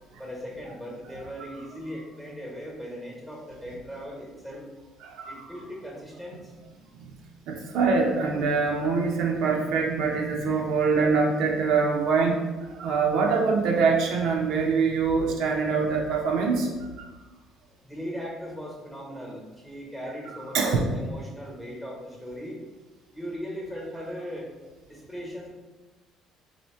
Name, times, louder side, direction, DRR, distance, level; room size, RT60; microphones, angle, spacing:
voice 1, 0.2-4.6 5.3-6.5 17.8-22.6 23.1-24.5 24.8-25.5, equal, 5° left, -3 dB, 1.1 m, -38 dB
voice 2, 5.0-5.5 6.9-7.1 7.5-17.0 20.5-20.9, right 4 dB, 75° right, 0 dB, 0.6 m, -24 dB
2.8 x 2.7 x 4.3 m, 1.3 s
cardioid pair, 130°, 0 cm